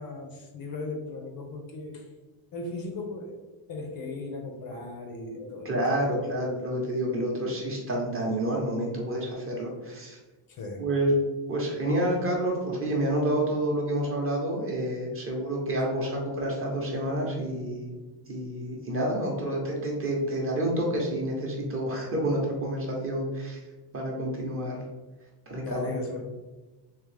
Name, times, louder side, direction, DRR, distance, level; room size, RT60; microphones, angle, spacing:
voice 1, 0.0-2.1 2.5-3.4 3.7-5.7 6.3-6.4 10.5-10.8 25.6-26.2, left 2 dB, 45° left, 2 dB, 0.6 m, -37 dB
voice 2, 5.6-10.2 10.8-11.1 11.5-17.9 18.3-23.6 23.9-24.7 25.5-26.0, right 1 dB, 25° right, -2 dB, 0.8 m, -29 dB
3.6 x 2.9 x 3.2 m, 1.2 s
cardioid pair, 160°, 50 cm